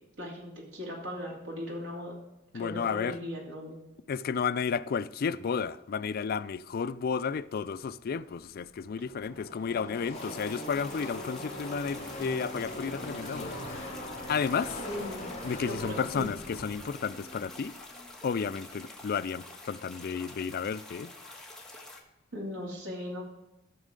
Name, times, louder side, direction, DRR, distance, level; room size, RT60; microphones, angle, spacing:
voice 1, 0.2-2.2 2.5-3.8 14.9-15.2 15.7-16.3 22.3-23.3, left 1 dB, 85° right, 2.6 m, -38 dB
voice 2, 2.5-3.2 4.1-13.6 14.3-14.8 15.4-17.7 18.2-21.1, left 6 dB, 50° left, 0.4 m, -32 dB
Car passing by / Race car auto racing, 8.0-8.1 8.3-18.9, left 1 dB, 30° left, 2.4 m, -42 dB
sound 1, 10.1-22.0, left 2 dB, 5° left, 1.3 m, -48 dB
14.5 x 6.4 x 3.8 m
head